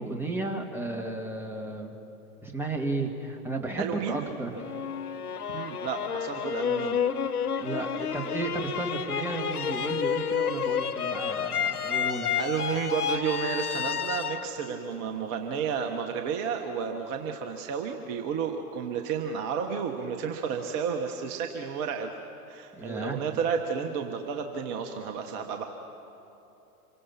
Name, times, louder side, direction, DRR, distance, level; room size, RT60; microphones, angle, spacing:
voice 1, 0.0-1.9 2.4-4.8 7.6-12.3 22.7-23.2, right 2 dB, 5° right, 1 dB, 2.0 m, -33 dB
voice 2, 3.8-4.2 5.5-7.0 12.3-22.1 22.5-25.6, right 6 dB, 35° right, 4 dB, 1.4 m, -31 dB
sound 1, 4.6-15.6, left 8 dB, 80° left, 0.9 m, -30 dB
27.0 x 23.5 x 5.9 m, 2.9 s
figure-of-eight pair, 105°, 45 cm